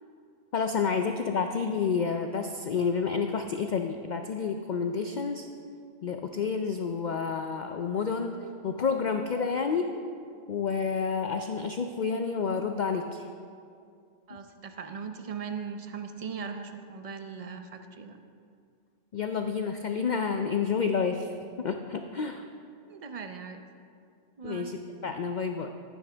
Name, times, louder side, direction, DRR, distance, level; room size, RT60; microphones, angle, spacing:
voice 1, 0.5-5.5 6.0-8.4 8.6-10.1 10.5-13.3 19.1-21.3 21.6-22.5 24.4-25.7, left 5 dB, 85° left, 6 dB, 0.4 m, -29 dB
voice 2, 14.3-18.2 22.9-23.6 24.4-24.7, right 6 dB, 45° right, 7 dB, 0.4 m, -39 dB
14.5 x 9.3 x 3.4 m, 2.3 s
omnidirectional pair, 1.4 m